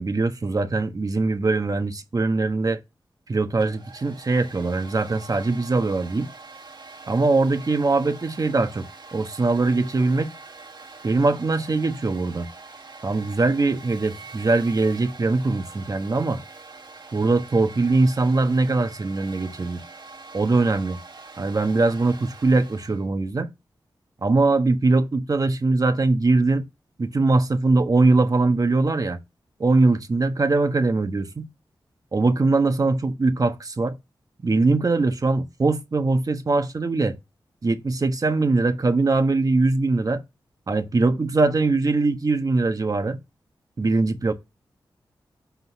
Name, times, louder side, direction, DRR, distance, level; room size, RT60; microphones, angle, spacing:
voice 1, 0.0-2.8 3.3-6.3 7.1-8.8 9.1-10.3 11.0-12.5 13.0-16.4 17.1-19.8 20.3-21.0 21.4-23.5 24.2-26.6 27.0-29.2 29.6-31.5 32.1-33.9 34.4-37.2 37.6-40.2 40.7-43.2 43.8-44.3, right 3 dB, 45° right, 1.2 m, -21 dB
Domestic sounds home sounds, 3.5-23.0, right 3 dB, 60° right, 2.0 m, -44 dB
8.2 x 3.9 x 6.1 m
wide cardioid pair, 75°, 8 cm